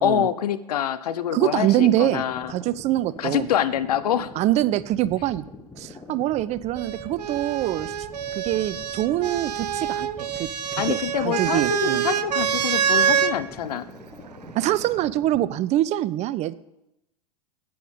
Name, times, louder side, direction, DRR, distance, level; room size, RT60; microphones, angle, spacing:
voice 1, 0.0-2.5 3.2-4.3 10.8-13.8, left 10 dB, 75° left, 15 dB, 0.7 m, -25 dB
voice 2, 1.3-3.5 4.4-5.4 5.8-7.9 8.3-10.1 10.4-12.0 14.5-16.5, right 14 dB, 35° right, 17 dB, 0.4 m, -24 dB
sound 1, 1.5-15.6, left 2 dB, 10° left, 1.3 m, -44 dB
sound 2, 6.8-13.4 14.5-15.1, right 8 dB, 85° right, 0.5 m, -26 dB
9.3 x 8.4 x 5.1 m, 0.85 s
hypercardioid pair, 95°, 20 cm